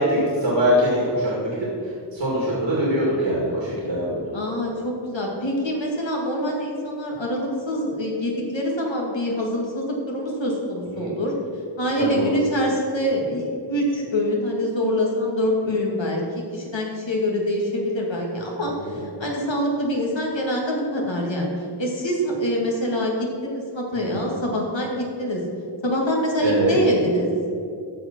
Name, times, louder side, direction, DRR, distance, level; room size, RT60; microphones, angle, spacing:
voice 1, 0.0-1.7 2.1-4.2 10.9-11.1 12.0-12.4 18.8-19.0 23.9-24.2 26.4-26.7, equal, 75° right, -5 dB, 2.3 m, -23 dB
voice 2, 4.3-11.3 11.8-16.2 16.5-21.5 21.8-25.4 25.8-27.3, equal, 75° left, -2 dB, 2.3 m, -25 dB
13.5 x 4.9 x 6.2 m, 2.5 s
wide cardioid pair, 55°, 45 cm